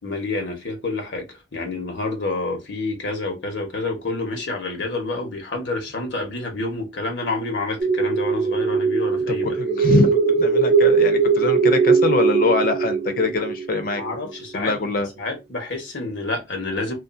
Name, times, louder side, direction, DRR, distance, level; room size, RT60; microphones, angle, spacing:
voice 1, 0.0-9.6 13.9-16.9, left 2 dB, 90° left, 1.0 m, -28 dB
sound 1, 7.8-14.3, right 5 dB, 40° right, 0.6 m, -20 dB
voice 2, 9.3-14.0 14.5-15.1, left 3 dB, 55° left, 0.5 m, -23 dB
2.5 x 2.3 x 2.5 m
head